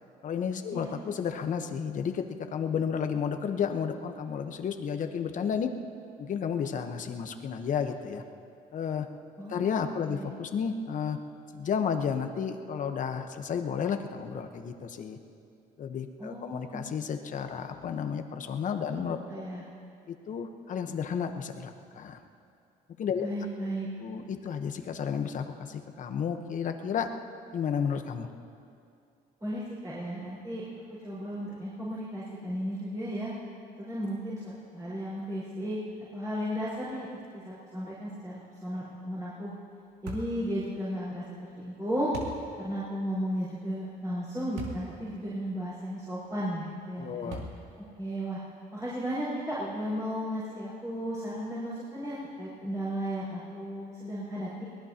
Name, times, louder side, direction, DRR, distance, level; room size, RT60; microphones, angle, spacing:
voice 1, 0.2-5.7 6.2-8.2 8.7-9.1 9.5-11.2 11.5-15.2 15.8-19.2 20.1-22.2 23.0-23.3 24.0-27.1 27.5-28.3 47.0-47.4, left 7 dB, 50° left, 6 dB, 1.1 m, -32 dB
voice 2, 9.4-10.3 16.2-16.8 19.0-19.6 23.2-23.9 29.4-30.6 31.0-33.3 33.8-35.8 36.1-37.1 37.3-39.5 40.0-41.2 41.6-42.1 42.6-47.3 48.0-48.4 48.7-54.6, equal, 20° right, -11 dB, 4.9 m, -34 dB
sound 1, 40.1-40.4 42.1-42.4 44.6-44.9 45.5-45.6 47.3-47.8, right 1 dB, 80° right, 2.6 m, -39 dB
23.0 x 19.0 x 3.0 m, 2.5 s
cardioid pair, 110°, 17 cm